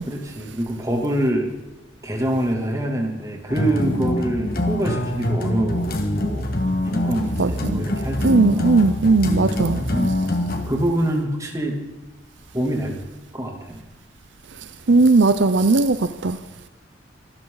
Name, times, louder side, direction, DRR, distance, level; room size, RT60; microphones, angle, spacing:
voice 1, 0.1-1.5 2.0-6.5 6.8-8.8 9.7-10.2 10.7-11.8 12.5-13.0 13.3-13.8 14.9-15.0, right 1 dB, 15° right, 2.7 m, -25 dB
sound 1, 3.5-10.7, left 1 dB, 55° left, 2.1 m, -24 dB
voice 2, 7.4-7.8 8.2-9.8 14.9-16.4, right 3 dB, 70° right, 0.7 m, -17 dB
25.5 x 13.5 x 4.0 m
head